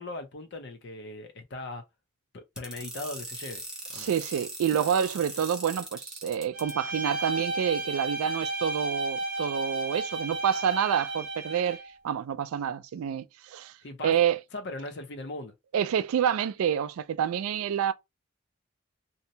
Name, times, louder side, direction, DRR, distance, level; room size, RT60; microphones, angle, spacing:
voice 1, 0.0-1.8 2.3-3.6 3.9-4.1 13.8-14.1 14.5-15.5, left 2 dB, 55° left, 0.6 m, -39 dB
sound 1, 2.6-6.7, right 1 dB, 5° right, 0.5 m, -39 dB
voice 2, 3.9-13.7 14.0-14.4 15.7-17.9, right 8 dB, 90° right, 0.3 m, -28 dB
Bowed string instrument, 6.5-11.9, right 2 dB, 55° right, 0.7 m, -33 dB
2.7 x 2.1 x 2.7 m
head